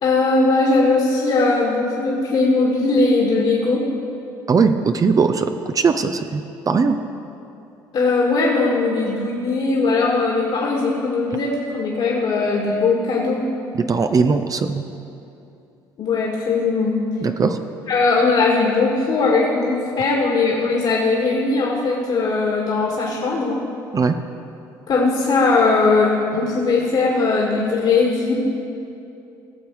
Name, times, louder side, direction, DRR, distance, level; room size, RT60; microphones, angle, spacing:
voice 1, 0.0-3.8 7.9-13.4 16.0-17.0 17.9-23.6 24.9-28.3, left 3 dB, 50° left, -3 dB, 2.0 m, -19 dB
voice 2, 4.5-7.0 13.7-14.8 17.2-17.6 23.9-24.1, right 5 dB, 35° right, 8 dB, 0.6 m, -19 dB
17.0 x 7.0 x 4.7 m, 2.7 s
hypercardioid pair, 65°, 11 cm